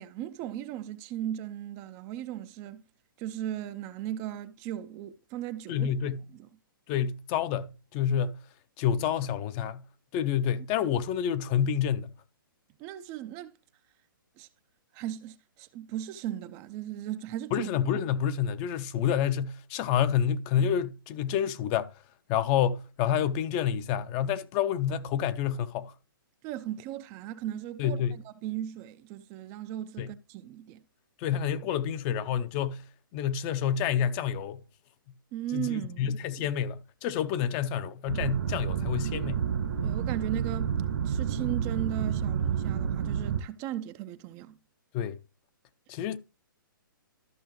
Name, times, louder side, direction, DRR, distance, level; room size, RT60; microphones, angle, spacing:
voice 1, 0.0-2.8 3.2-5.9 6.3-6.5 12.8-13.6 14.4-14.5 14.9-17.7 26.4-30.8 35.3-36.2 39.8-40.8 41.0-44.6, right 12 dB, 25° right, 0.5 m, -37 dB
voice 2, 5.7-6.2 6.9-8.4 8.8-9.8 10.1-12.1 17.5-21.9 22.3-25.9 27.8-28.2 30.0-30.1 31.2-34.6 35.5-39.5 44.9-45.2 45.9-46.2, left 9 dB, 30° left, 0.7 m, -28 dB
sound 1, 38.1-43.4, right 8 dB, 70° right, 1.8 m, -30 dB
13.5 x 5.7 x 3.1 m
hypercardioid pair, 140°, 12 cm